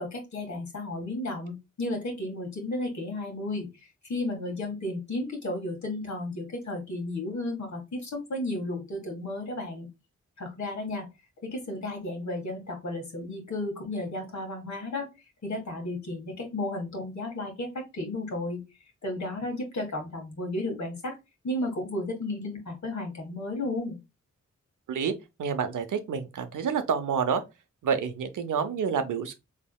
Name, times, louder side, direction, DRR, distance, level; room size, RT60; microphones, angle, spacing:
voice 1, 0.0-9.9 10.4-11.1 11.4-15.1 15.4-17.7 17.9-18.6 19.0-21.1 21.4-24.0, left 2 dB, 65° left, 1.6 m, -33 dB
voice 2, 24.9-27.4 27.8-29.3, right 6 dB, 80° right, 0.6 m, -28 dB
3.5 x 3.5 x 2.2 m
cardioid pair, 50°, 30 cm